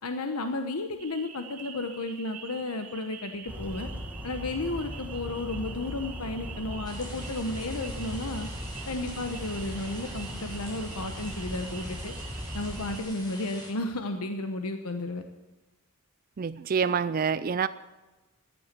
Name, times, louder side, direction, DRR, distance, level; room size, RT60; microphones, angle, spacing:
voice 1, 0.0-3.9 4.2-8.5 8.9-12.1 12.5-15.2, left 2 dB, 80° left, 6 dB, 1.0 m, -33 dB
sound 1, 1.0-13.0, right 7 dB, 85° right, 2.4 m, -47 dB
Bird vocalization bird call bird song, 3.5-13.0, equal, 5° right, 1.9 m, -39 dB
sound 2, 6.8-13.7, equal, 20° left, 4.0 m, -45 dB
voice 2, 16.4-17.7, right 6 dB, 40° right, 15 dB, 0.4 m, -27 dB
14.5 x 10.5 x 7.5 m, 1.1 s
head